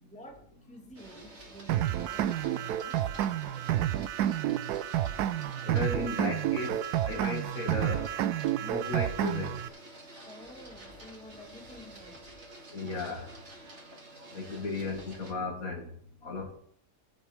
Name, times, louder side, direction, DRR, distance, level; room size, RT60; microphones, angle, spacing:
voice 1, 0.0-3.8 10.3-12.2 14.8-14.9, equal, 5° left, 1.7 m, -51 dB
Printer, 1.0-15.3, right 1 dB, 45° right, 2.3 m, -50 dB
sound 1, 1.7-9.7, right 12 dB, 80° right, 1.1 m, -30 dB
voice 2, 5.6-8.2 8.6-9.6 12.7-13.3 14.3-15.9 16.2-16.6, left 3 dB, 60° left, 2.5 m, -35 dB
19.0 x 7.8 x 3.5 m
omnidirectional pair, 1.7 m